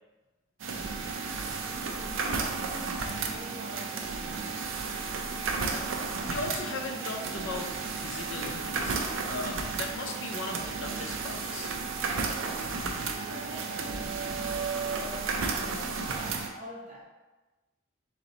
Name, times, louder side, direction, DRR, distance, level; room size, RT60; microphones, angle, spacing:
sound 1, 0.6-16.5, right 4 dB, 80° right, 0.5 m, -33 dB
voice 1, 1.1-4.6 13.1-17.1, equal, 35° right, -4 dB, 1.1 m, -46 dB
voice 2, 5.5-5.9 6.3-11.7, left 3 dB, 75° left, 3 dB, 0.6 m, -38 dB
3.9 x 3.2 x 3.9 m, 1.1 s
head